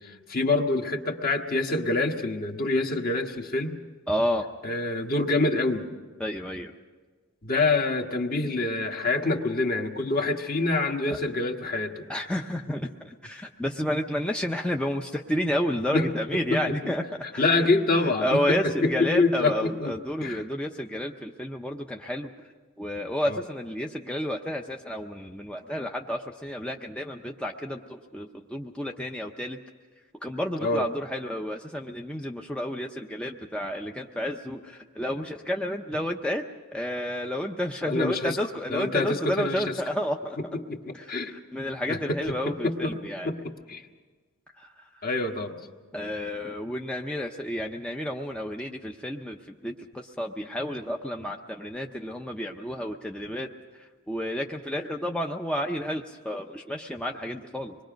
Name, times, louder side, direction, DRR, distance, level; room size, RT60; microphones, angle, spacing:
voice 1, 0.0-3.8 4.6-5.9 7.4-12.1 15.9-16.9 17.4-19.9 20.2-20.4 23.3-23.4 30.6-30.9 37.8-38.4 38.7-39.8 40.5-41.3 41.9-42.9 43.2-43.8 45.0-45.6, left 2 dB, 40° left, 2 dB, 1.5 m, -26 dB
voice 2, 4.1-4.5 6.2-6.7 11.1-11.2 12.1-17.0 17.3-17.7 18.2-22.3 22.8-29.6 30.2-36.4 36.7-40.4 40.9-43.3 44.6-45.0 45.9-53.5 53.8-57.8, equal, 5° left, 1 dB, 0.6 m, -31 dB
25.5 x 21.5 x 5.2 m, 1.4 s
head